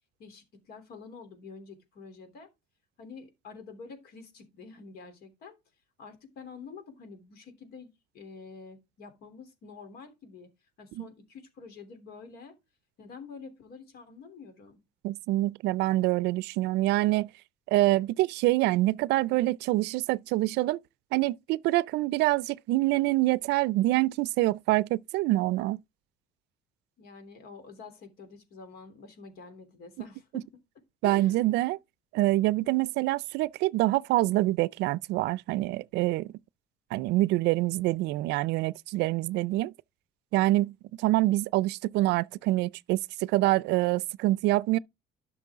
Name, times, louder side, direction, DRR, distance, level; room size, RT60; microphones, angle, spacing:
voice 1, 0.2-2.5 3.0-5.5 6.0-10.5 10.8-12.5 13.0-14.8 27.0-30.4 31.0-31.4, left 5 dB, 70° left, 3.2 m, -47 dB
voice 2, 15.0-17.3 17.7-20.8 21.1-25.8 31.0-31.8 32.1-36.3 36.9-39.7 40.3-44.8, right 17 dB, 85° right, 0.4 m, -26 dB
11.5 x 6.2 x 3.6 m
cardioid pair, 110°, 17 cm